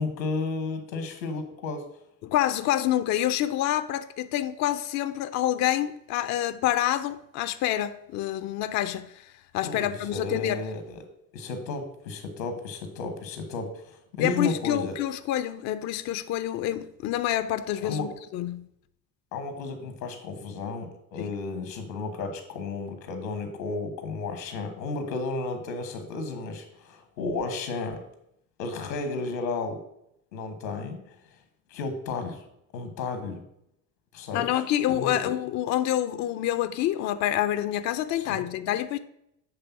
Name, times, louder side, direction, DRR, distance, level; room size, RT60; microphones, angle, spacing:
voice 1, 0.0-1.9 9.6-11.0 11.3-15.0 17.8-18.1 19.3-28.0 28.6-29.8 30.3-31.2 31.7-32.4 32.7-33.4 34.1-34.6 34.9-35.1 38.1-38.5, left 3 dB, 85° left, 1.4 m, -33 dB
voice 2, 2.2-10.6 14.2-18.7 21.2-21.3 34.3-39.0, left 12 dB, 35° left, 0.4 m, -27 dB
7.7 x 3.4 x 5.7 m
hypercardioid pair, 70°, 50 cm